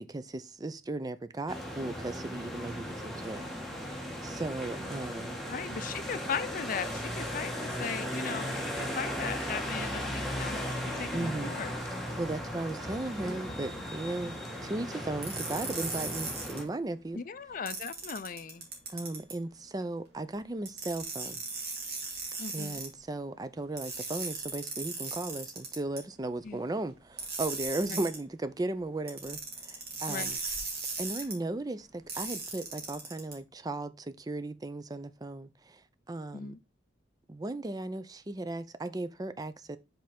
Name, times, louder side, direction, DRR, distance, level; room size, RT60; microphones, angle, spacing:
voice 1, 0.0-3.4 3.8-5.4 11.1-11.6 12.2-14.4 14.6-17.2 18.9-21.4 22.5-30.4 31.0-35.8 36.1-36.6 37.3-39.8, right 2 dB, 20° right, 0.4 m, -36 dB
sound 1, 1.5-16.7, equal, ahead, 1.2 m, -37 dB
voice 2, 5.5-11.7 17.1-18.7 22.4-22.8 26.4-26.6 27.8-28.0 30.1-30.4 36.3-36.6, left 6 dB, 50° left, 0.5 m, -38 dB
sound 2, 15.2-16.6 17.7-19.4 20.6-22.9 23.8-26.0 27.2-28.2 29.1-31.3 32.1-33.3, right 4 dB, 60° right, 2.4 m, -37 dB
5.5 x 4.4 x 5.1 m
head